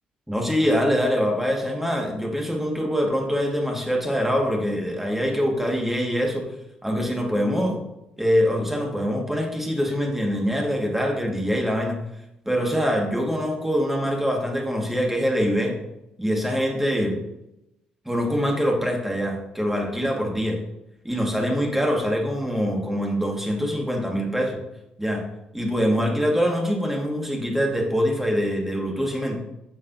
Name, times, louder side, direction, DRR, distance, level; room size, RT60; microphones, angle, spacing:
voice 1, 0.3-6.5 6.8-7.8 8.2-12.0 12.5-15.7 16.2-17.2 18.1-20.6 21.0-24.6 25.0-25.2 25.5-29.4, equal, 5° right, 0 dB, 1.9 m, -24 dB
9.3 x 6.3 x 2.8 m, 0.89 s
figure-of-eight pair, 45°, 4 cm